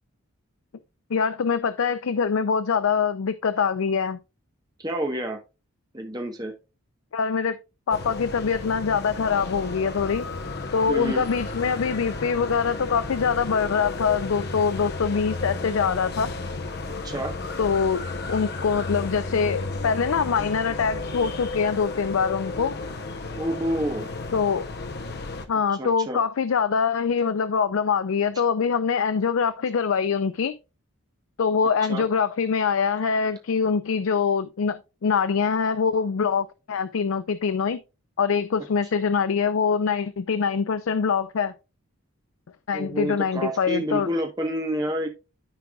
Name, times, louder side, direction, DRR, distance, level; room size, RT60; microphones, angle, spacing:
voice 1, 1.1-4.2 7.1-7.6 7.9-10.3 10.7-16.3 17.6-22.8 24.3-24.7 25.5-30.6 31.4-37.8 38.2-41.5 42.7-44.1, left 6 dB, 70° left, 0.4 m, -24 dB
voice 2, 4.8-5.4 5.9-6.5 10.9-11.2 16.9-17.3 23.4-24.1 25.7-26.2 31.9-32.1 42.7-45.1, right 1 dB, 20° right, 1.1 m, -29 dB
sound 1, 7.9-25.5, left 3 dB, 50° left, 0.8 m, -33 dB
13.0 x 4.7 x 2.3 m
head